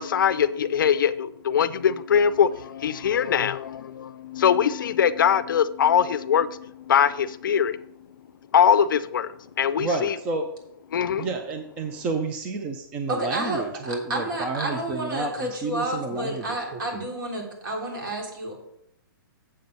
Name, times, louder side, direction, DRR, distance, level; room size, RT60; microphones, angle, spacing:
voice 1, 0.0-7.9 8.5-10.2 10.9-11.3, left 8 dB, 60° left, 0.5 m, -22 dB
voice 2, 9.8-10.5 11.2-17.0, right 3 dB, 10° right, 0.3 m, -30 dB
voice 3, 13.1-18.6, right 1 dB, 65° right, 3.5 m, -30 dB
7.7 x 7.5 x 5.4 m
hypercardioid pair, 170°, 12 cm